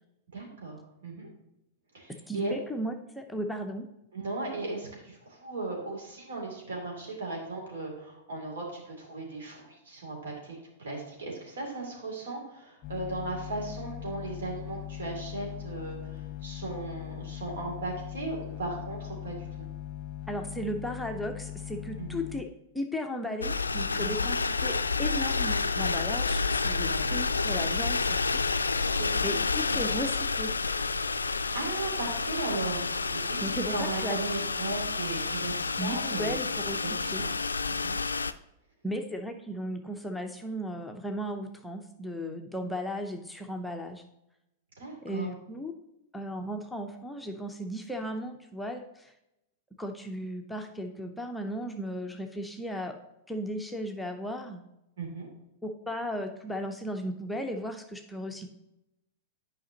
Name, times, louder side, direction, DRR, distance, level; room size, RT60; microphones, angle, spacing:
voice 1, 0.3-1.3 1.9-2.5 4.1-19.4 22.0-22.2 24.0-24.1 26.8-27.1 28.9-29.4 29.7-29.8 31.5-36.3 36.8-37.3 37.7-38.0 44.8-45.3 55.0-55.3, right 2 dB, 70° right, -1 dB, 2.8 m, -37 dB
voice 2, 2.3-3.9 20.3-22.5 22.7-28.8 29.2-30.5 33.4-34.2 35.8-36.8 37.1-37.2 38.8-44.0 45.0-45.7 46.1-49.1 49.8-53.0 53.3-54.6 55.6-58.5, equal, 5° left, 3 dB, 0.7 m, -36 dB
sound 1, 12.8-22.4, left 12 dB, 35° left, 0.8 m, -40 dB
sound 2, 23.4-38.3, left 4 dB, 85° left, 0.3 m, -29 dB
10.0 x 5.1 x 2.9 m, 0.88 s
figure-of-eight pair, 100°, 0 cm